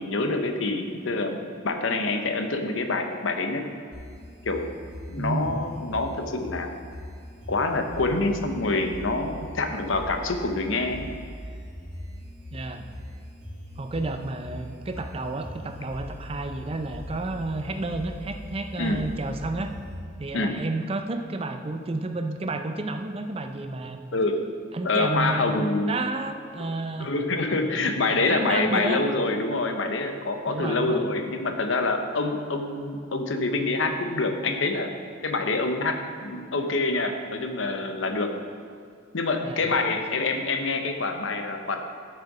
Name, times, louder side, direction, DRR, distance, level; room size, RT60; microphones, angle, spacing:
voice 1, 0.0-1.4 1.6-3.6 4.4-4.7 5.1-6.7 7.5-11.1 18.8-19.0 20.3-20.5 24.1-24.4 24.8-26.0 26.6-26.7 27.0-34.9 35.2-38.3 39.1-41.8, left 3 dB, 80° left, 6 dB, 0.8 m, -26 dB
sound 1, 3.9-19.9, equal, 60° right, 2.2 m, -41 dB
voice 2, 5.2-5.7 12.5-12.9 13.8-19.7 20.2-24.0 24.7-27.1 27.7-29.0 30.5-31.0 39.4-39.7, right 2 dB, 30° right, 7 dB, 0.5 m, -31 dB
9.1 x 6.7 x 4.8 m, 2.4 s
head